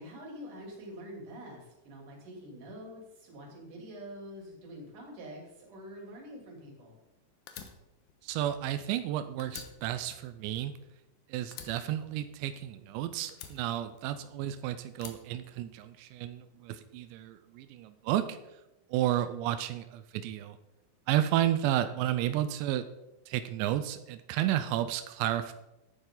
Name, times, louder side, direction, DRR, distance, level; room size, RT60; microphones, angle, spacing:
voice 1, 0.0-6.9, equal, 45° right, -1 dB, 4.0 m, -46 dB
Fire, 7.5-9.1 9.4-11.1 11.5-12.8 13.3-14.4 14.9-16.1, left 8 dB, 75° left, 2.8 m, -49 dB
voice 2, 8.2-10.7 11.3-18.4 18.9-20.6 21.1-22.9 23.3-25.5, right 12 dB, 90° right, 11 dB, 2.5 m, -32 dB
14.5 x 9.6 x 3.9 m, 0.94 s
omnidirectional pair, 5.8 m